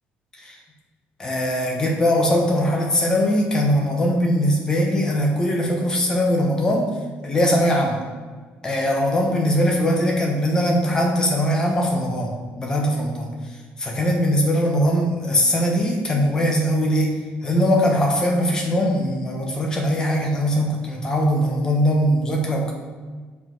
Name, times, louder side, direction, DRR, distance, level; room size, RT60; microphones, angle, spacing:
voice 1, 1.2-6.9 7.2-8.0 8.6-13.3 13.8-22.7, equal, 20° left, 0 dB, 1.1 m, -21 dB
6.0 x 5.1 x 4.5 m, 1.4 s
cardioid pair, 165°, 4 cm